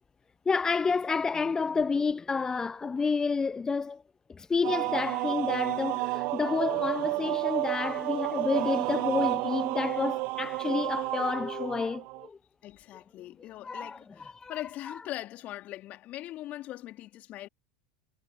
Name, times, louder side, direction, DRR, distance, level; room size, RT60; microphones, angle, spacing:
voice 1, 0.5-4.0 4.3-12.4 13.6-14.5 14.9-15.0, left 4 dB, 15° left, 0.6 m, -30 dB
sound 1, 4.6-12.3, right 25 dB, 50° right, 1.4 m, -31 dB
voice 2, 12.6-17.5, left 15 dB, 45° left, 3.0 m, -41 dB
figure-of-eight pair, 80°, 4 cm